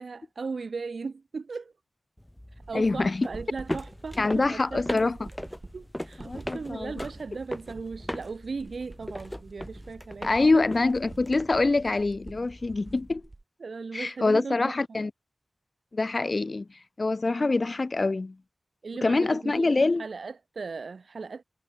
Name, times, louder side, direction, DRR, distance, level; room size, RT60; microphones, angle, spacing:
voice 1, 0.0-1.7 2.7-5.1 5.7-10.6 13.6-15.0 18.8-19.7 20.0-21.4, right 4 dB, 75° right, 3.5 m, -37 dB
sound 1, 2.2-13.1, left 1 dB, 10° left, 3.0 m, -40 dB
sound 2, 2.6-13.4, right 2 dB, 40° right, 3.7 m, -47 dB
voice 2, 2.7-3.3 4.2-5.3 6.2-7.0 10.2-13.2 13.9-15.1 15.9-16.6 17.0-18.3 19.0-20.0, left 3 dB, 50° left, 1.2 m, -25 dB
wide cardioid pair, 70°, 0 cm